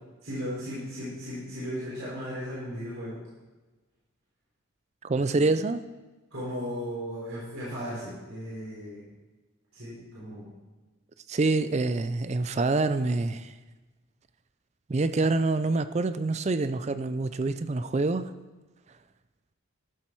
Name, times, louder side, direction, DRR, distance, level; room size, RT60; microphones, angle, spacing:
voice 1, 0.2-3.2 5.2-5.5 6.3-9.0 9.7-10.5, equal, 70° right, -9 dB, 4.1 m, -36 dB
voice 2, 5.0-5.8 11.3-13.5 14.9-18.3, right 3 dB, 30° right, 13 dB, 0.4 m, -26 dB
13.5 x 7.4 x 4.6 m, 1.2 s
head